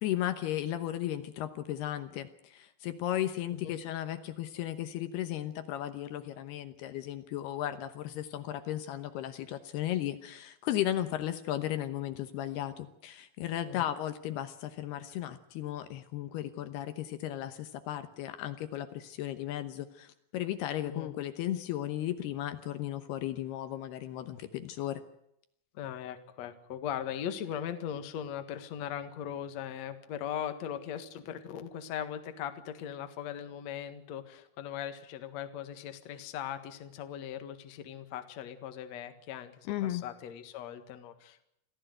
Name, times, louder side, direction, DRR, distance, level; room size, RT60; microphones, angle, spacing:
voice 1, 0.0-25.0 39.7-40.0, left 12 dB, 75° left, 10 dB, 2.9 m, -35 dB
voice 2, 25.7-41.4, left 9 dB, 55° left, 8 dB, 2.2 m, -39 dB
26.5 x 16.0 x 7.9 m, 0.78 s
omnidirectional pair, 5.0 m